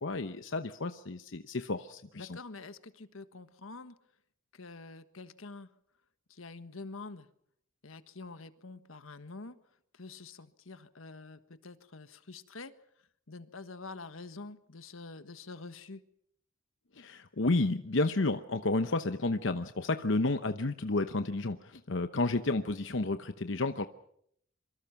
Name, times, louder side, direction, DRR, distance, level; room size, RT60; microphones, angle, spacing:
voice 1, 0.0-2.3 17.0-23.9, left 2 dB, 65° left, 9 dB, 0.9 m, -31 dB
voice 2, 2.1-4.0 4.5-5.7 6.3-7.3 7.8-9.6 9.9-12.7 13.3-16.1, left 3 dB, 85° left, 11 dB, 1.4 m, -46 dB
26.5 x 24.0 x 5.9 m, 0.70 s
head